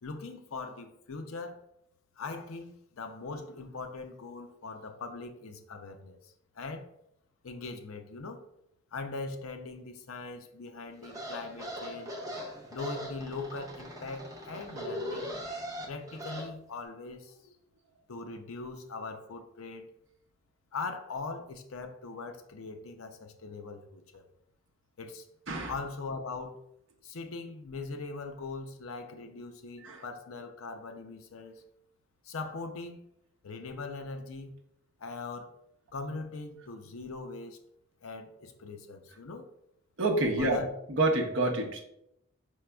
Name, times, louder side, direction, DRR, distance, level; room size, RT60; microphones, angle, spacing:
voice 1, 0.0-1.6 2.2-6.9 7.4-8.5 8.9-12.1 12.7-15.4 15.8-17.4 18.1-19.9 20.7-24.3 25.0-25.3 25.7-26.6 27.0-31.6 32.2-33.0 33.4-34.6 35.0-35.5 35.9-37.6 38.0-39.5 40.4-40.7, left 3 dB, 75° left, 6 dB, 0.5 m, -41 dB
sound 1, 11.0-16.5, equal, 15° right, 0.7 m, -40 dB
voice 2, 40.0-40.6 40.9-41.8, right 2 dB, 60° right, 0 dB, 0.7 m, -27 dB
4.9 x 4.5 x 2.2 m, 0.78 s
head